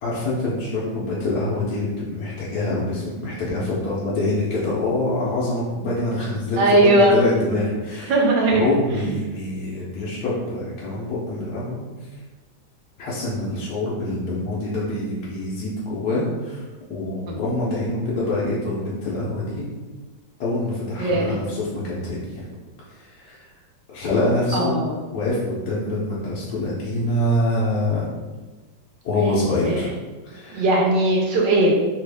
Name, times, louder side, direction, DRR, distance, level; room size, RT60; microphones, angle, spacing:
voice 1, 0.0-8.1 8.5-11.8 13.0-19.6 20.4-22.4 22.9-23.4 23.9-24.8 25.1-28.1 29.0-29.9 30.2-30.7, left 2 dB, 70° left, -7 dB, 1.2 m, -25 dB
voice 2, 6.6-7.2 8.1-8.7 17.3-17.4 21.0-21.3 24.5-25.0 29.6-29.8 30.5-31.7, right 1 dB, 75° right, -1 dB, 1.3 m, -18 dB
3.3 x 2.4 x 3.3 m, 1.3 s
omnidirectional pair, 1.9 m